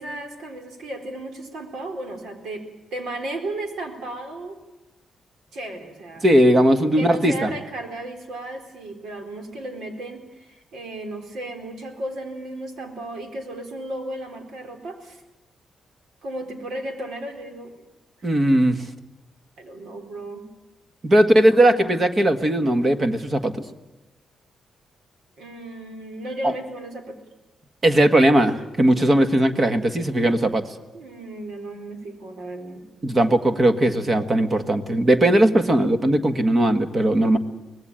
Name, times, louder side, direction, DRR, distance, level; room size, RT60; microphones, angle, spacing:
voice 1, 0.0-2.6 2.9-4.6 5.5-6.3 6.9-15.2 16.2-17.8 19.6-20.4 21.2-21.9 25.4-27.2 30.9-32.8, right 1 dB, 70° right, 6 dB, 4.2 m, -34 dB
voice 2, 6.2-7.5 18.2-18.8 21.0-23.5 26.4-26.5 27.8-30.7 33.0-37.4, right 1 dB, 25° right, 9 dB, 1.6 m, -18 dB
24.5 x 19.0 x 9.0 m, 1.0 s
wide cardioid pair, 160°, 0 cm